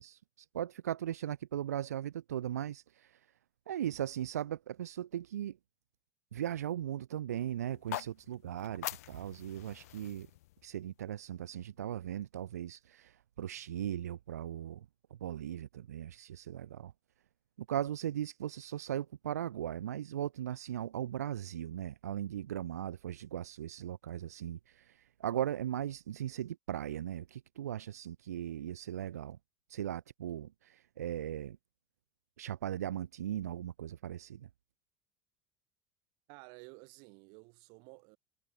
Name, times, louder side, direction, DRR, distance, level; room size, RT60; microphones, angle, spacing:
voice 1, 0.0-3.3 3.7-5.6 6.3-10.3 10.6-14.9 15.2-16.9 17.7-29.4 29.7-31.6 32.4-34.5, right 11 dB, 75° right, 0.6 m, -38 dB
sound 1, 7.7-11.8, left 17 dB, 70° left, 0.7 m, -45 dB
voice 2, 36.3-38.2, right 35 dB, 60° right, 1.9 m, -53 dB
figure-of-eight pair, 70°, 9 cm